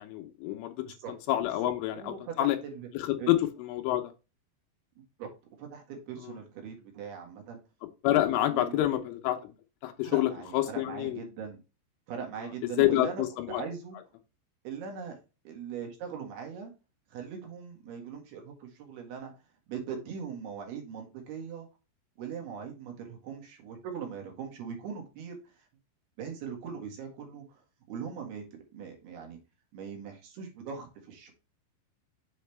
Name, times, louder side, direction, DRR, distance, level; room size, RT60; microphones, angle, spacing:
voice 1, 0.0-2.6 2.9-3.4 3.7-4.1 8.0-9.5 9.8-11.2 12.8-13.6, left 14 dB, 90° left, 5 dB, 3.3 m, -28 dB
voice 2, 1.9-2.9 3.2-3.3 5.2-5.3 5.6-7.6 8.1-9.0 10.0-11.6 12.1-14.0 14.6-15.2 15.5-16.7 17.1-19.3 19.7-21.7 22.2-25.6 26.2-29.4 29.7-31.3, right 6 dB, 65° right, 2 dB, 3.5 m, -41 dB
7.7 x 5.1 x 3.3 m, 0.29 s
omnidirectional pair, 5.5 m